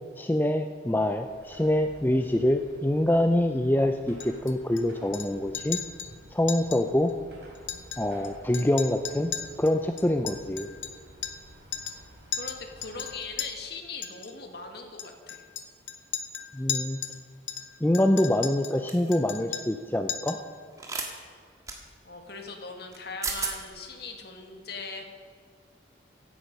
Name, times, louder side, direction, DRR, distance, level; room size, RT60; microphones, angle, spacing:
voice 1, 0.2-5.8 6.3-7.1 8.0-9.3 9.6-10.7 16.5-17.0 17.8-20.4, left 1 dB, 10° left, 6 dB, 0.4 m, -25 dB
Car passing by / Traffic noise roadway noise / Engine, 0.9-13.5, equal, 65° right, 3.6 m, -52 dB
Chink clink, 4.2-4.8 5.1-5.3 5.5-6.1 6.5-6.8 7.1-7.2 7.6-8.3 8.5-11.5 11.7-12.0 12.3-13.5 14.0-14.3 15.0-17.2 17.5-18.8 19.1-19.8 20.1-20.5, left 9 dB, 80° left, 1.0 m, -36 dB
voice 2, 12.3-15.4 22.0-25.0, left 4 dB, 55° left, 4 dB, 1.8 m, -40 dB
sound 1, 18.9-19.1 20.8-21.1 21.7-21.8 22.9-23.0 23.2-23.5, right 4 dB, 15° right, 1.6 m, -32 dB
15.5 x 11.0 x 5.3 m, 2.1 s
head